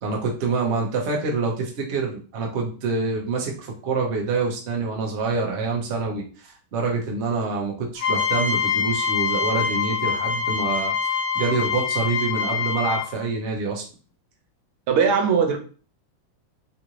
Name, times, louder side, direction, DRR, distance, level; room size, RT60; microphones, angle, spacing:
voice 1, 0.0-13.8, right 4 dB, 55° right, 0 dB, 0.8 m, -26 dB
sound 1, 8.0-13.2, left 6 dB, 70° left, 1.2 m, -25 dB
voice 2, 14.9-15.6, right 6 dB, 85° right, 5 dB, 1.5 m, -19 dB
3.8 x 2.5 x 2.9 m, 0.37 s
omnidirectional pair, 2.3 m